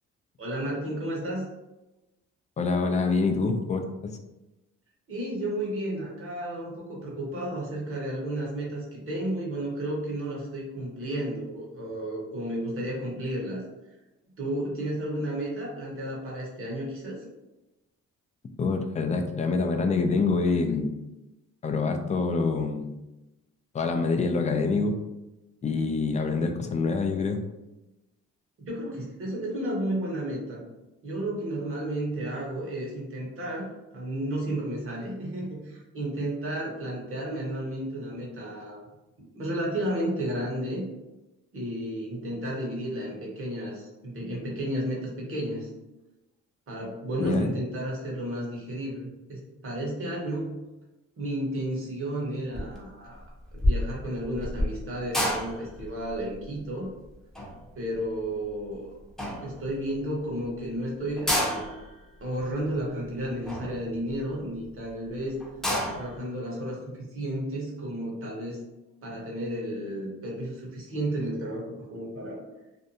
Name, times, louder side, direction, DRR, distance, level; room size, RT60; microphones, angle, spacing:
voice 1, 0.4-1.5 5.1-13.6 14.4-17.2 28.7-30.6 31.0-38.8 39.2-40.8 41.5-45.7 46.7-50.5 51.2-53.2 53.5-56.9 57.7-58.8 59.4-61.6 62.2-65.4 65.9-68.6 69.0-72.4, right 1 dB, 45° right, -3 dB, 1.1 m, -32 dB
voice 2, 2.6-3.9 18.6-20.9 21.6-22.9 23.7-24.9 25.6-27.4 47.2-47.5, left 4 dB, 25° left, 5 dB, 0.3 m, -26 dB
sound 1, 52.5-52.9 53.1-58.7 59.2-59.9 60.4-60.5 60.6-60.7 61.1-64.7 65.1-65.2 65.4-66.2, left 1 dB, ahead, 0.7 m, -30 dB
2.6 x 2.2 x 2.7 m, 1.0 s
cardioid pair, 90°, 30 cm